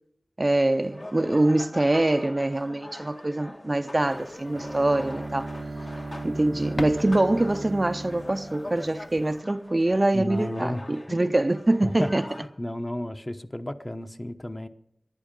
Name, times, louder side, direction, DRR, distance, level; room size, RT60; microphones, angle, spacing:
voice 1, 0.4-5.5 6.2-12.3, right 1 dB, 35° right, 0.5 m, -24 dB
sound 1, 0.7-12.5, left 1 dB, 55° left, 2.1 m, -43 dB
sound 2, 3.9-9.4, left 2 dB, 70° left, 0.8 m, -44 dB
Bowed string instrument, 4.5-9.5, right 2 dB, 80° right, 0.7 m, -37 dB
voice 2, 10.1-11.3 11.8-12.1 12.4-14.7, left 1 dB, 20° left, 0.9 m, -33 dB
19.0 x 11.5 x 5.3 m
wide cardioid pair, 50°, 0 cm